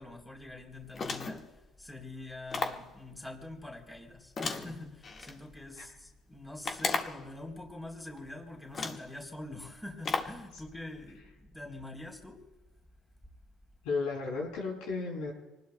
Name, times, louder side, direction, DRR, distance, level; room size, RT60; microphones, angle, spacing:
voice 1, 0.0-12.4, left 2 dB, 10° left, 1 dB, 3.6 m, -45 dB
sound 1, 0.9-1.5 2.5-2.9 4.4-5.4 6.6-7.3 8.2-8.3 8.7-9.1 10.0-10.4, left 4 dB, 35° left, 1.7 m, -34 dB
voice 2, 13.8-15.3, left 4 dB, 85° left, -3 dB, 7.4 m, -34 dB
28.0 x 20.0 x 2.3 m, 1.1 s
cardioid pair, 110°, 0 cm